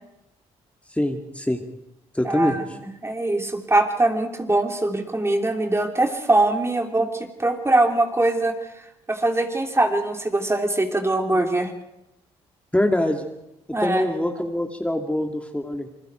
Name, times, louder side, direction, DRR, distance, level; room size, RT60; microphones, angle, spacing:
voice 1, 0.9-1.6 2.1-2.6 12.7-13.3 13.8-15.9, left 1 dB, 10° left, 3 dB, 2.5 m, -24 dB
voice 2, 2.2-8.7 9.1-11.7 13.7-14.0, right 2 dB, 20° right, 4 dB, 3.1 m, -22 dB
27.5 x 21.5 x 4.6 m, 0.89 s
hypercardioid pair, 50°, 14 cm